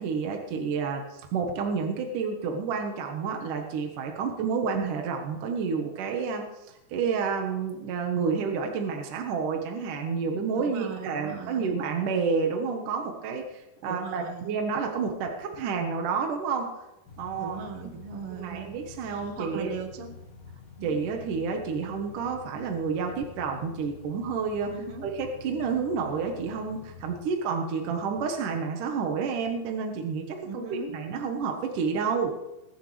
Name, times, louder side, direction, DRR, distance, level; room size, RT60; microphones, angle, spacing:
voice 1, 0.0-16.7 17.2-17.7 18.3-19.7 20.8-24.7 25.0-32.4, right 5 dB, 70° right, 3 dB, 2.7 m, -30 dB
voice 2, 10.5-11.7 13.9-14.6 17.4-20.2 20.8-21.0 24.7-25.1 30.4-31.0, right 5 dB, 50° right, 3 dB, 2.1 m, -39 dB
sound 1, 17.1-27.2, left 6 dB, 45° left, 2.7 m, -48 dB
21.5 x 11.0 x 3.3 m, 0.95 s
omnidirectional pair, 4.0 m